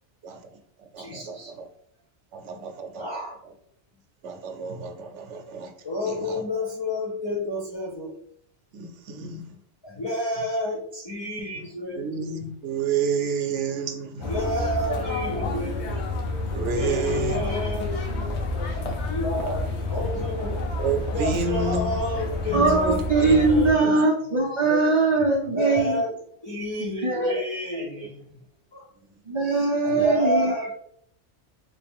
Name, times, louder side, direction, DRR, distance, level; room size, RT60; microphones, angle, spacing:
voice 1, 0.2-1.7 2.3-3.1 4.2-5.7 6.1-6.4 8.7-9.6 11.5-11.6 11.9-14.3 16.5-17.4 20.8-21.9 22.4-23.9 24.3-24.4, right 4 dB, 80° right, 5 dB, 0.9 m, -30 dB
voice 2, 1.0-1.5 2.4-3.4 5.8-8.1 9.8-12.1 14.2-15.9 16.7-17.9 19.1-20.7 21.1-23.9 25.4-26.2 26.4-28.4 28.7-28.9 29.4-30.7, left 1 dB, 35° left, -3 dB, 0.4 m, -30 dB
sound 1, 14.2-23.7, left 2 dB, 70° left, 1.0 m, -29 dB
voice 3, 22.5-26.0 27.0-27.3 29.3-30.5, right 3 dB, 40° right, -2 dB, 0.4 m, -21 dB
3.5 x 2.5 x 3.4 m, 0.67 s
omnidirectional pair, 1.2 m